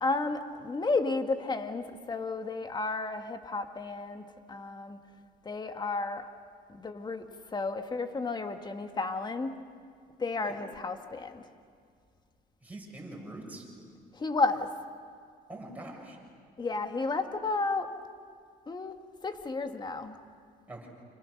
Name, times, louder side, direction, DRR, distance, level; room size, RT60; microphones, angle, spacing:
voice 1, 0.0-5.0 5.4-6.3 6.7-7.3 7.5-9.6 10.2-11.4 14.1-14.7 16.6-17.9 18.7-19.0 19.2-20.2, left 3 dB, 25° left, 7 dB, 1.7 m, -32 dB
voice 2, 12.6-13.7 15.5-16.2 20.7-20.9, right 1 dB, 10° right, -1 dB, 6.8 m, -43 dB
29.5 x 26.5 x 6.5 m, 2.1 s
cardioid pair, 110°, 17 cm